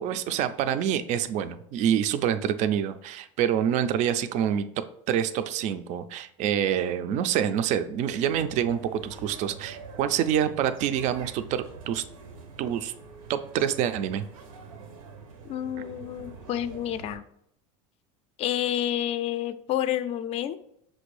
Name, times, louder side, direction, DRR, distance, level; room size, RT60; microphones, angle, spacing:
voice 1, 0.0-4.7 5.1-12.0 12.6-12.9 13.3-14.2, right 9 dB, 45° right, 10 dB, 0.4 m, -26 dB
sound 1, 8.0-17.2, right 4 dB, 90° right, 0.7 m, -45 dB
voice 2, 15.4-17.2 18.4-20.6, left 11 dB, 40° left, 12 dB, 0.4 m, -29 dB
5.8 x 2.6 x 3.2 m, 0.73 s
supercardioid pair, 115°, 17 cm